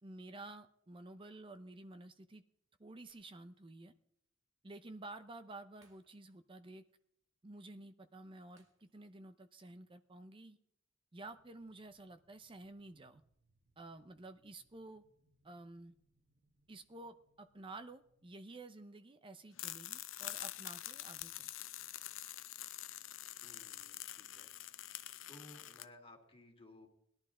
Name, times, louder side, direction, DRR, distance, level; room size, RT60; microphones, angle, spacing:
voice 1, 0.0-2.4 2.8-3.9 4.6-6.8 7.4-10.6 11.1-13.2 13.8-15.0 15.4-15.9 16.7-21.5, right 2 dB, 25° right, 9 dB, 0.6 m, -52 dB
Shatter, 3.1-3.8 4.2-4.3 5.8-6.6 6.9-7.0 8.6-9.3 9.6-9.8, right 3 dB, 80° right, 2.3 m, -75 dB
sound 1, 11.2-18.3, right 1 dB, 55° right, 1.6 m, -78 dB
sound 2, 19.6-25.8, left 14 dB, 70° left, 0.6 m, -46 dB
voice 2, 23.4-24.5 25.3-26.9, left 1 dB, 30° left, 2 dB, 2.2 m, -58 dB
20.0 x 11.5 x 3.8 m, 0.72 s
head